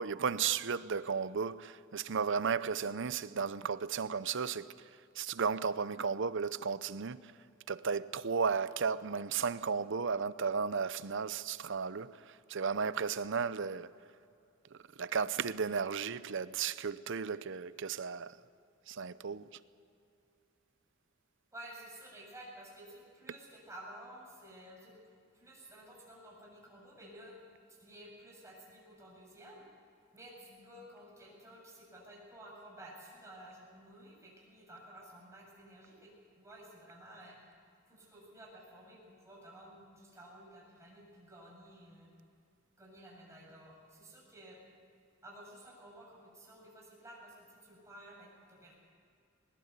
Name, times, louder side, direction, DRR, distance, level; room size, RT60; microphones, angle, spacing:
voice 1, 0.0-4.7 5.2-7.3 7.7-13.9 14.7-18.4 18.9-19.5, right 6 dB, 65° right, 0.7 m, -34 dB
voice 2, 21.5-24.9 25.3-27.3 27.7-29.6 30.1-36.1 36.4-37.4 37.9-42.1 42.8-44.6 45.2-48.7, right 1 dB, 15° right, 7.5 m, -53 dB
20.5 x 20.0 x 8.3 m
head